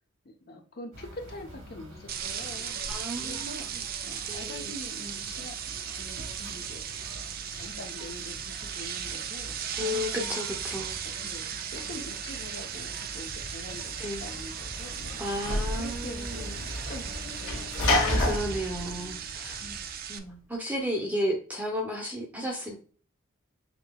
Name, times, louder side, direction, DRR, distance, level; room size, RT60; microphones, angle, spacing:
voice 1, 0.2-2.7 3.2-3.7 4.0-6.8 7.5-10.5 11.0-15.2 15.7-17.7 19.6-19.9 21.0-21.1 21.8-21.9 22.3-22.4, left 2 dB, 50° left, 5 dB, 0.7 m, -45 dB
sound 1, 0.9-18.4, right 1 dB, 75° right, 1.4 m, -45 dB
sound 2, 2.1-20.2, right 8 dB, 45° right, 0.4 m, -37 dB
voice 2, 2.9-3.6 4.3-4.7 9.8-11.0 14.0-14.2 15.2-16.6 17.8-19.6 20.1-22.8, equal, 5° right, 1 dB, 0.7 m, -33 dB
Sliding door / Slam, 14.1-20.0, left 2 dB, 70° left, 1.4 m, -31 dB
5.9 x 2.8 x 2.2 m, 0.41 s
head